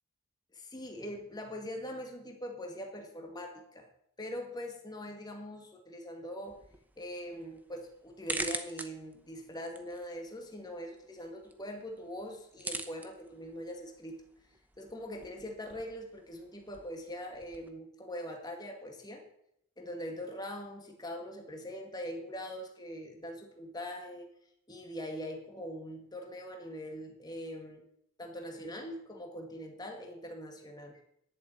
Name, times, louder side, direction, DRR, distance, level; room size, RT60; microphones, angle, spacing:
voice 1, 0.5-3.9 4.2-6.6 7.0-14.2 14.8-19.2 19.8-24.3 24.7-27.8 28.2-31.0, equal, 20° left, 2 dB, 2.1 m, -42 dB
sound 1, 6.4-17.7, right 2 dB, 10° right, 0.9 m, -45 dB
11.5 x 7.0 x 9.1 m, 0.73 s
head